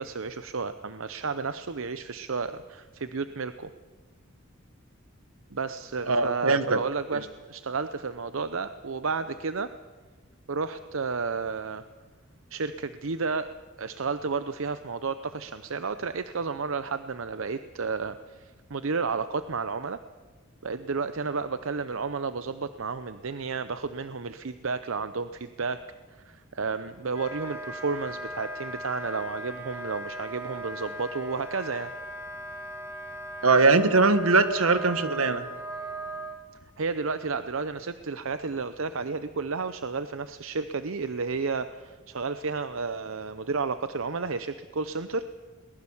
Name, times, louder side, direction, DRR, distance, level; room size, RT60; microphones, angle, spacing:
voice 1, 0.0-3.7 5.5-9.7 10.5-11.8 12.5-13.5 13.8-20.0 20.6-25.8 26.1-31.9 36.8-45.2, right 4 dB, 65° right, 12 dB, 0.7 m, -32 dB
voice 2, 6.1-6.8 33.4-35.4, right 3 dB, 80° right, 11 dB, 1.5 m, -21 dB
Wind instrument woodwind instrument, 27.1-36.3, right 1 dB, 15° right, 2.9 m, -38 dB
22.0 x 20.0 x 7.2 m, 1.4 s
head